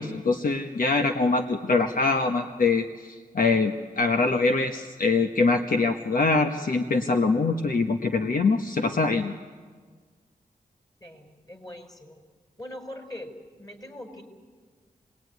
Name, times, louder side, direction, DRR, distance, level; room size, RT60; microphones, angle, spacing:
voice 1, 0.0-9.3, left 3 dB, 65° left, 5 dB, 1.3 m, -24 dB
voice 2, 11.0-12.2 12.6-13.3 13.6-14.2, left 1 dB, 25° left, 5 dB, 5.1 m, -41 dB
28.5 x 19.5 x 9.6 m, 1.5 s
cardioid pair, 50°, 16 cm